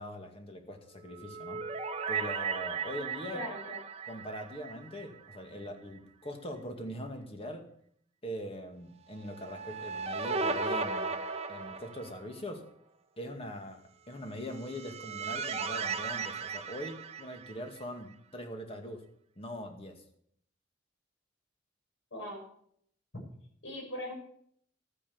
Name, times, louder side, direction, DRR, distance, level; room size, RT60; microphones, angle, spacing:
voice 1, 0.0-1.6 2.1-3.4 4.1-7.6 8.2-11.2 11.5-12.7 13.2-19.0 19.4-20.0, equal, 30° left, 4 dB, 2.1 m, -42 dB
sound 1, 1.1-5.4 5.6-5.7 9.3-12.4 14.4-17.8, right 5 dB, 35° right, 1.0 m, -36 dB
voice 2, 3.3-3.8 22.1-22.4 23.6-24.1, left 1 dB, 75° left, -1 dB, 6.7 m, -40 dB
13.0 x 9.8 x 7.1 m, 0.66 s
head